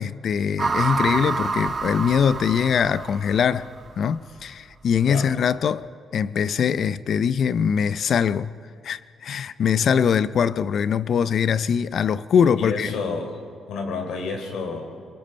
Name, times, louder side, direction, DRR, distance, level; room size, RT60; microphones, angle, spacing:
voice 1, 0.0-3.7 4.0-8.5 8.8-13.0, left 7 dB, 60° left, 0.5 m, -22 dB
sound 1, 0.6-3.9, right 4 dB, 35° right, 1.5 m, -27 dB
voice 2, 12.4-13.4 13.7-14.9, left 4 dB, 80° left, 3.4 m, -30 dB
26.5 x 22.5 x 4.4 m
cardioid pair, 90°, 0 cm